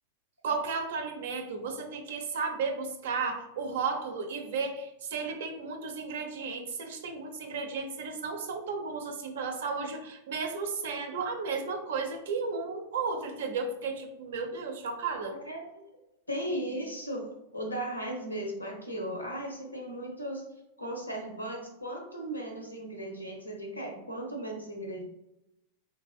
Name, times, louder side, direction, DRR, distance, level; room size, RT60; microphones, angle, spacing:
voice 1, 0.4-15.3, right 4 dB, 60° right, 5 dB, 0.4 m, -34 dB
voice 2, 15.4-15.9 16.3-20.4 20.8-25.0, right 1 dB, 85° left, 2 dB, 0.6 m, -36 dB
3.2 x 2.3 x 2.4 m, 0.88 s
figure-of-eight pair, 90°, 0 cm